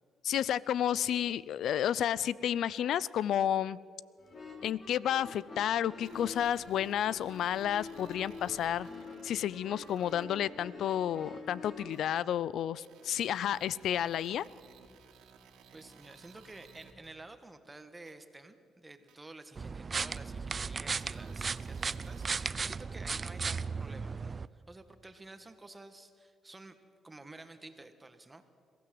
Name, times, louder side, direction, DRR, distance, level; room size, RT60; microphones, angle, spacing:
voice 1, 0.2-3.8 4.6-8.9 9.2-14.4, left 10 dB, 75° left, 21 dB, 0.5 m, -31 dB
sound 1, 4.2-11.9, left 3 dB, 45° left, 4.6 m, -47 dB
sound 2, 6.0-9.2 9.7-10.2 10.9-11.0 11.9-12.0 12.8-17.1 18.1-18.2 19.1-19.2 20.1-20.2 21.0-22.4, right 6 dB, 90° right, 2.5 m, -58 dB
voice 2, 15.7-26.8 27.0-28.4, right 2 dB, 20° right, 9 dB, 1.7 m, -51 dB
sound 3, 19.6-24.5, right 5 dB, 35° right, 0.5 m, -36 dB
22.0 x 15.5 x 7.8 m, 2.4 s
cardioid pair, 90°, 0 cm